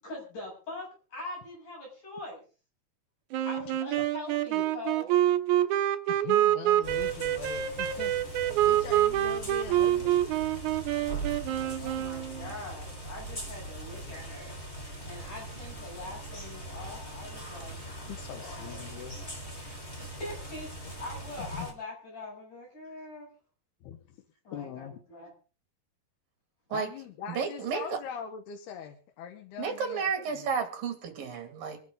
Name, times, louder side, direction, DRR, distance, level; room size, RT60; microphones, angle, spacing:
voice 1, 0.0-2.4 3.5-5.2 11.3-14.6 15.0-18.8 20.0-20.7 21.0-23.3 24.5-25.3, left 2 dB, 50° left, -3 dB, 9.5 m, -43 dB
Sax Alto - C minor, 3.3-12.5, right 12 dB, 80° right, 1.7 m, -27 dB
voice 2, 6.1-8.1 8.6-10.3 18.1-19.2 21.4-21.7 23.9-24.0 24.5-25.0 26.7-30.1 30.4-30.5, left 8 dB, 80° left, 4 dB, 3.2 m, -42 dB
sound 1, 6.8-21.7, right 1 dB, 15° left, 3.3 m, -41 dB
voice 3, 27.3-28.0 29.6-31.8, right 6 dB, 60° right, 6 dB, 4.0 m, -32 dB
24.5 x 11.0 x 3.9 m, 0.37 s
omnidirectional pair, 4.6 m